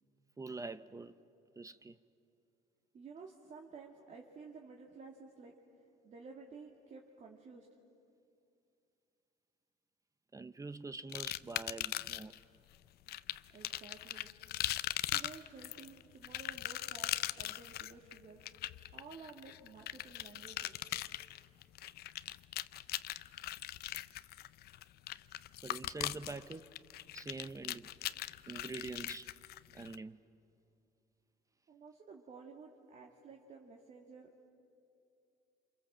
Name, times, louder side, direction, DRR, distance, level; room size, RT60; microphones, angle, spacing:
voice 1, 0.4-1.2 1.6-2.0 10.3-12.4 25.6-26.8 27.1-27.9 28.5-29.3 29.7-30.2, right 3 dB, 20° right, 0.6 m, -45 dB
voice 2, 2.9-5.5 6.0-7.7 13.5-14.3 15.1-18.4 18.9-20.8 31.7-34.3, right 4 dB, 45° right, 2.3 m, -53 dB
sound 1, 11.1-12.4 13.1-29.9, left 14 dB, 70° left, 0.6 m, -40 dB
28.5 x 27.0 x 7.5 m
cardioid pair, 110°, 17 cm